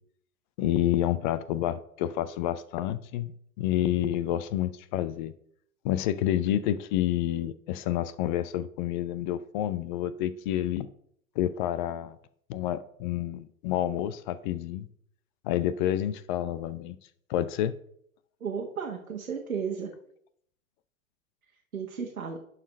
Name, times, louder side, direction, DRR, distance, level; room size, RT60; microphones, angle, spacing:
voice 1, 0.6-5.3 5.8-10.9 11.4-12.2 12.5-14.9 15.4-17.0 17.3-17.8, left 12 dB, 35° left, 15 dB, 0.6 m, -29 dB
voice 2, 18.4-19.9 21.7-22.4, right 6 dB, 80° right, 0 dB, 1.4 m, -34 dB
11.0 x 4.1 x 5.3 m, 0.68 s
figure-of-eight pair, 95°, 42 cm